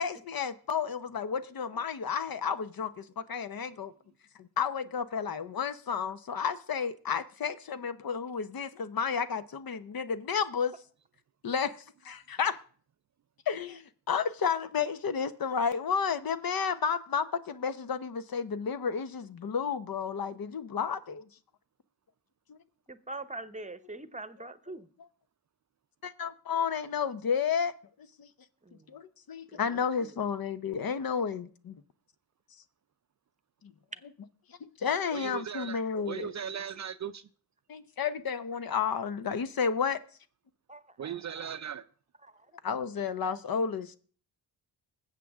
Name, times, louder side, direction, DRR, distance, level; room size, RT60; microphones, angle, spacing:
voice 1, 0.0-3.9 4.4-10.7 11.4-11.8 12.0-12.6 13.5-21.2 22.5-22.6 26.0-27.7 28.2-28.3 28.9-31.8 33.6-33.7 34.8-36.3 37.7-40.0 42.6-44.0, left 6 dB, 50° left, 0.9 m, -31 dB
voice 2, 22.9-24.9 28.6-28.9 29.5-30.1 40.7-41.1 41.4-41.5 42.2-42.3, right 2 dB, 15° right, 0.9 m, -44 dB
voice 3, 35.1-37.3 41.0-41.9, right 8 dB, 40° right, 0.5 m, -38 dB
20.5 x 7.5 x 3.6 m
supercardioid pair, 50°, 44 cm